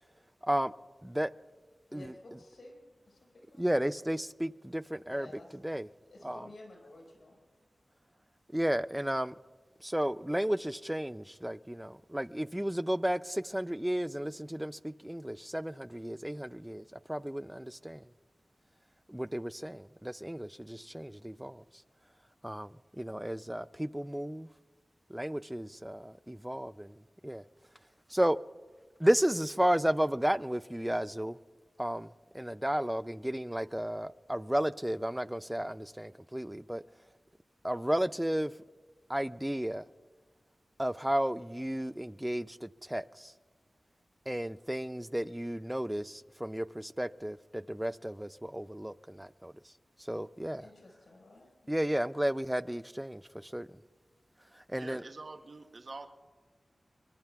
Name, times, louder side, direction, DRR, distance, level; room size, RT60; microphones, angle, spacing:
voice 1, 1.9-2.7 3.0-3.8 5.1-5.6 6.1-7.4 50.5-51.7, left 2 dB, 90° left, 4.8 m, -53 dB
voice 2, 3.6-5.3 5.6-5.9 6.2-6.5 8.5-9.3 9.8-18.1 19.1-21.6 22.4-24.5 25.1-27.4 28.1-28.4 29.0-31.4 31.8-36.8 37.6-38.5 39.1-39.9 40.8-43.3 44.3-49.5 50.0-50.7 51.7-53.7 54.5-55.0, equal, 10° right, 0.4 m, -33 dB
voice 3, 54.8-56.1, right 3 dB, 60° right, 0.8 m, -46 dB
24.5 x 22.5 x 2.3 m
wide cardioid pair, 65°, 0 cm